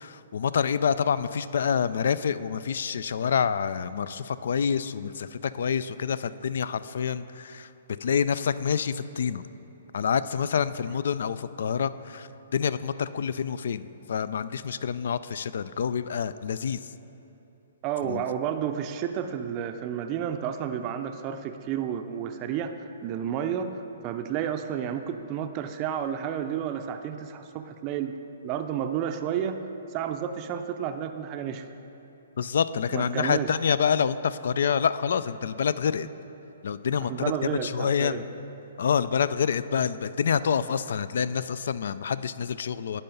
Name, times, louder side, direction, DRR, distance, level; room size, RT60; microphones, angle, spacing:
voice 1, 0.0-7.7 8.0-9.4 9.9-16.8 18.0-18.2 32.4-36.1 36.6-37.1 37.6-38.2 38.8-43.0, left 7 dB, 70° left, 15 dB, 0.3 m, -27 dB
voice 2, 17.8-28.2 28.4-29.6 29.9-31.7 32.9-33.5 37.0-38.3, right 9 dB, 30° right, 6 dB, 0.5 m, -31 dB
10.0 x 5.5 x 5.3 m, 3.0 s
hypercardioid pair, 140°, 0 cm